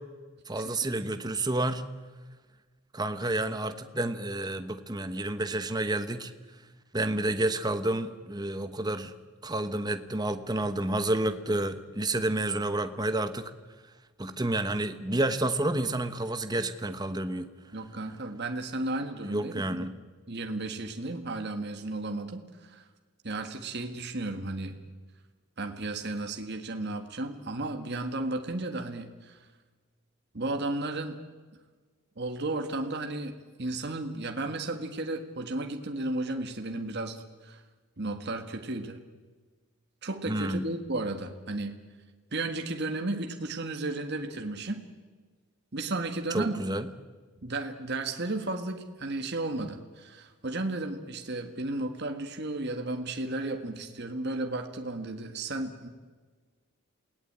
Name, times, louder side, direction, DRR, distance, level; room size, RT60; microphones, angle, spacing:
voice 1, 0.5-1.9 2.9-6.3 6.9-9.1 9.4-13.5 14.2-17.5 19.2-19.9 40.3-40.6 46.3-46.9, right 2 dB, 20° right, 9 dB, 1.2 m, -30 dB
voice 2, 17.7-19.9 20.3-22.8 23.2-24.8 25.6-29.4 30.3-31.2 32.2-33.3 33.6-37.6 38.0-39.0 40.0-41.8 42.3-44.8 45.7-46.6 47.4-55.9, right 2 dB, 50° right, 5 dB, 1.7 m, -34 dB
28.0 x 18.0 x 8.7 m, 1.4 s
head